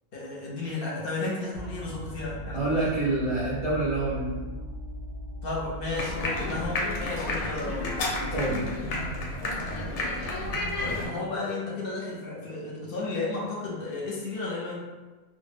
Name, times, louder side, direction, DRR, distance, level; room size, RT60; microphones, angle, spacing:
voice 1, 0.1-3.1 5.4-7.9 10.8-14.8, left 3 dB, 60° left, -4 dB, 0.8 m, -33 dB
sound 1, 1.5-8.8, equal, 90° right, 0.9 m, -40 dB
voice 2, 2.5-4.4 8.2-8.7, right 2 dB, 40° right, -9 dB, 0.4 m, -27 dB
sound 2, 5.9-11.1, left 2 dB, 85° left, 0.9 m, -31 dB
2.1 x 2.1 x 3.2 m, 1.3 s
omnidirectional pair, 1.2 m